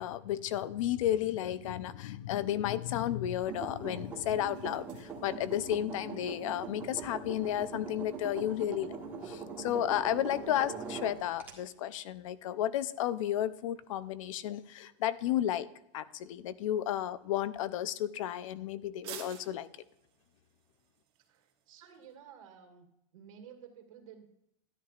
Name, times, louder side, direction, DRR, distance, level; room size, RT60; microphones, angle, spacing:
voice 1, 0.0-9.0 9.2-15.7 15.9-19.7, left 12 dB, 75° left, 16 dB, 0.6 m, -33 dB
sound 1, 2.6-22.2, right 9 dB, 35° right, 1.7 m, -58 dB
sound 2, 3.5-11.5, right 5 dB, 10° right, 1.6 m, -42 dB
voice 2, 21.3-22.9 23.1-24.3, right 8 dB, 85° right, 3 dB, 2.2 m, -53 dB
13.0 x 10.5 x 2.5 m, 0.81 s
supercardioid pair, 165°, 17 cm